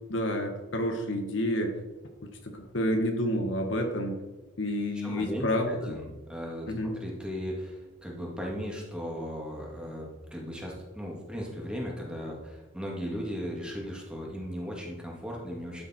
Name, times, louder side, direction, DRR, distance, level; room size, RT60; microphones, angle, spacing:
voice 1, 0.1-1.8 2.4-4.2 4.6-6.0 6.7-6.9, equal, 70° left, 4 dB, 1.4 m, -29 dB
voice 2, 5.0-6.7 7.0-15.9, equal, 5° right, -2 dB, 2.1 m, -37 dB
12.0 x 7.2 x 4.4 m, 1.1 s
head